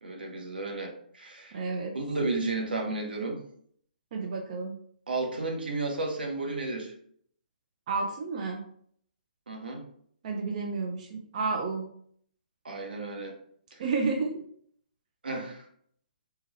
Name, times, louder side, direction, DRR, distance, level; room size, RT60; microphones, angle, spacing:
voice 1, 0.0-1.6 1.9-3.4 5.1-6.9 9.5-9.8 12.6-13.3 13.7-13.8 15.2-15.7, right 3 dB, 85° right, 2 dB, 1.0 m, -33 dB
voice 2, 1.5-2.0 4.1-4.8 7.9-8.6 10.2-11.9 13.8-14.4, right 4 dB, 50° right, 2 dB, 0.5 m, -31 dB
3.5 x 2.9 x 3.1 m, 0.63 s
hypercardioid pair, 140°, 5 cm